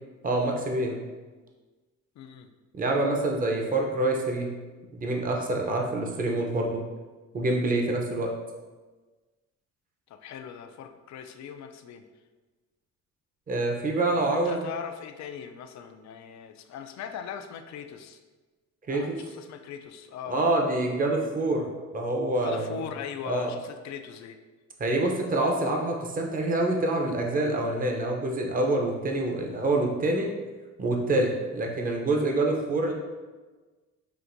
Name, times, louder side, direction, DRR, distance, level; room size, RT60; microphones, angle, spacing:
voice 1, 0.2-1.0 2.7-4.5 4.9-6.8 7.3-8.3 13.5-14.6 18.9-19.2 20.3-21.7 21.9-22.8 23.2-23.5 24.8-30.3 30.8-32.9, right 2 dB, 30° right, 1 dB, 0.6 m, -26 dB
voice 2, 2.2-2.5 10.2-12.0 14.2-18.2 18.9-20.5 22.4-24.4, left 7 dB, 65° left, 7 dB, 0.4 m, -39 dB
5.8 x 2.5 x 2.6 m, 1.3 s
cardioid pair, 90°, 30 cm